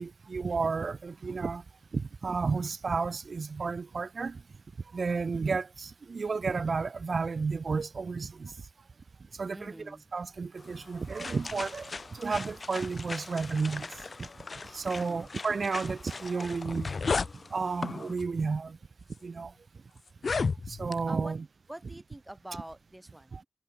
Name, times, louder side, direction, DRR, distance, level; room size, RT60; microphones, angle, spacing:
voice 1, 0.0-1.6 1.9-4.4 4.9-8.5 9.4-9.7 10.1-13.9 14.2-14.3 14.7-16.9 17.5-18.8 19.2-19.5 20.7-21.4 23.3-23.4, right 4 dB, 80° right, 1.3 m, -32 dB
voice 2, 9.5-10.0 14.9-15.3 21.0-21.3 21.7-23.5, right 1 dB, 15° right, 5.6 m, -45 dB
sound 1, 10.6-18.1, left 3 dB, 60° left, 5.0 m, -42 dB
sound 2, 16.2-16.3 16.6-17.3 18.2-18.4 19.1-19.2 20.1-21.0, left 4 dB, 80° left, 0.9 m, -30 dB
wide cardioid pair, 75°, 0 cm